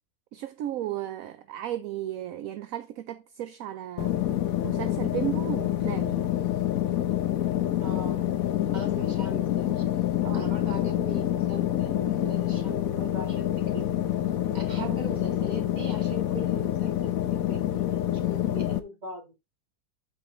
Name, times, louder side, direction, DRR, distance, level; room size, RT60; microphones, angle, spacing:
voice 1, 0.3-4.2 4.6-6.3 10.2-10.5 14.8-15.0, right 12 dB, 70° right, 1.0 m, -34 dB
sound 1, 4.0-18.8, left 12 dB, 65° left, 1.1 m, -27 dB
voice 2, 7.8-8.3 8.7-9.8 10.3-13.5 13.7-13.9 14.5-19.3, equal, 25° right, 2.4 m, -40 dB
8.5 x 4.8 x 3.9 m
omnidirectional pair, 1.6 m